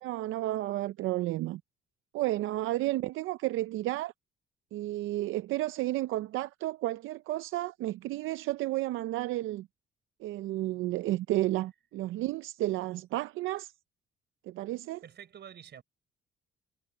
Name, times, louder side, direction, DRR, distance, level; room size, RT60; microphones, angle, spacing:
voice 1, 0.0-1.6 2.1-4.1 4.7-9.7 10.2-13.7 14.5-15.0, right 16 dB, 85° right, 0.5 m, -32 dB
voice 2, 15.0-15.8, right 8 dB, 60° right, 5.4 m, -48 dB
cardioid pair, 90°, 20 cm